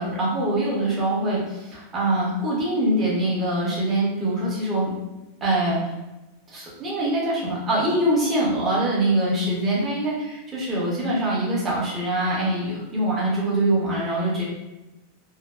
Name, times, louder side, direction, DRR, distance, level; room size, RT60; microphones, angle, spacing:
voice 1, 0.0-4.9 5.4-5.9 6.5-10.1 10.5-14.5, right 1 dB, 20° right, -5 dB, 0.7 m, -23 dB
2.5 x 2.2 x 2.3 m, 1.0 s
supercardioid pair, 165°, 0 cm